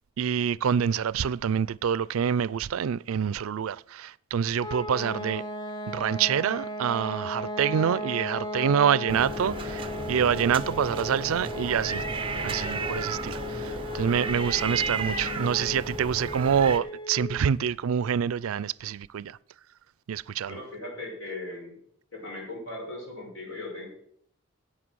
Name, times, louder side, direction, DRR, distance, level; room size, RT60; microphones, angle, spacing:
voice 1, 0.2-5.4 5.9-12.0 12.4-19.4 20.1-20.6, right 8 dB, 85° right, 0.4 m, -26 dB
sound 1, 4.6-17.4, left 2 dB, 20° left, 0.9 m, -36 dB
sound 2, 9.1-16.8, right 3 dB, 25° right, 0.8 m, -34 dB
voice 2, 20.4-21.8 22.1-23.9, left 2 dB, 70° left, 5.7 m, -38 dB
11.0 x 8.7 x 6.3 m
head